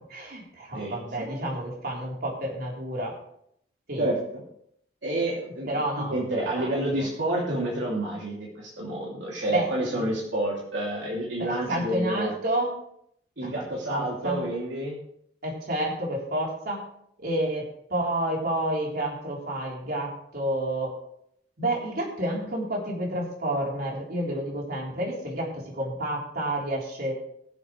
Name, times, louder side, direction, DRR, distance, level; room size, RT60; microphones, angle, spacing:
voice 1, 0.1-3.2 3.9-4.0 5.7-6.2 6.6-7.1 9.5-10.1 11.4-12.8 13.4-13.5 13.9-14.4 15.4-16.8 17.2-20.9 21.6-27.1, right 1 dB, 55° right, -2 dB, 3.9 m, -30 dB
voice 2, 0.7-1.5 4.0-4.2 5.0-12.3 13.4-15.0, right 1 dB, 75° right, -4 dB, 2.9 m, -29 dB
22.0 x 7.6 x 3.3 m, 0.71 s
head